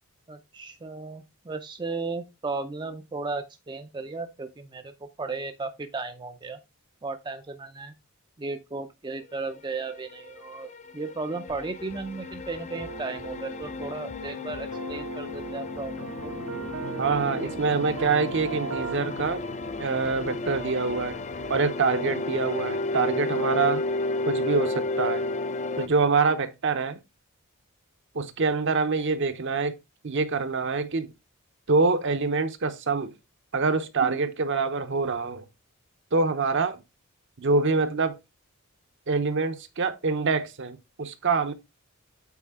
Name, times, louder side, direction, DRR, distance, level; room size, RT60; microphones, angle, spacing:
voice 1, 0.3-6.6 7.0-7.9 8.4-16.3, right 3 dB, 20° right, 0.5 m, -35 dB
sound 1, 9.7-25.9, left 2 dB, 30° left, 0.5 m, -33 dB
sound 2, 11.5-21.8, equal, 85° left, 2.4 m, -51 dB
sound 3, 12.7-19.0, right 4 dB, 85° right, 1.1 m, -38 dB
voice 2, 17.0-19.4 19.8-21.2 21.5-23.8 24.3-25.3 25.8-27.0 28.1-29.8 30.0-31.1 31.7-33.1 33.5-35.4 36.1-36.8 37.4-38.2 39.1-41.5, right 4 dB, 55° right, 0.8 m, -25 dB
8.3 x 4.3 x 3.6 m
head